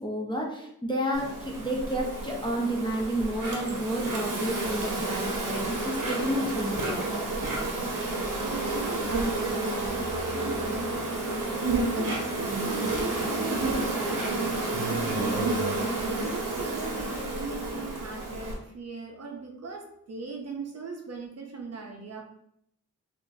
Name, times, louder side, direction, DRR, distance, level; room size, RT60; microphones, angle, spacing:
voice 1, 0.0-7.1, equal, 15° left, -2 dB, 0.5 m, -30 dB
Insect, 1.1-18.5, right 2 dB, 75° right, 0.8 m, -30 dB
voice 2, 7.9-11.3 11.9-22.2, right 4 dB, 50° right, 1 dB, 0.6 m, -39 dB
sound 1, 8.3-17.5 17.8-17.9 18.1-18.6, left 3 dB, 70° left, 0.9 m, -51 dB
3.7 x 2.5 x 2.6 m, 0.74 s
wide cardioid pair, 155°, 33 cm